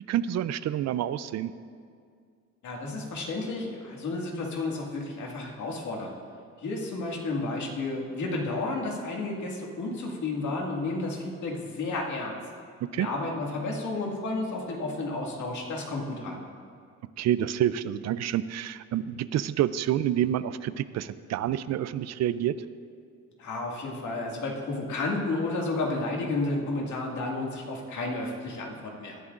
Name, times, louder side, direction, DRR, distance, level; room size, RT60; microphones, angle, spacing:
voice 1, 0.1-1.5 12.9-13.1 17.2-22.6, right 11 dB, 60° right, 16 dB, 0.4 m, -28 dB
voice 2, 2.6-6.1 6.6-12.4 12.9-16.4 23.4-29.2, left 2 dB, 70° left, -1 dB, 2.1 m, -32 dB
18.0 x 11.0 x 2.5 m, 2.3 s
cardioid pair, 90°, 30 cm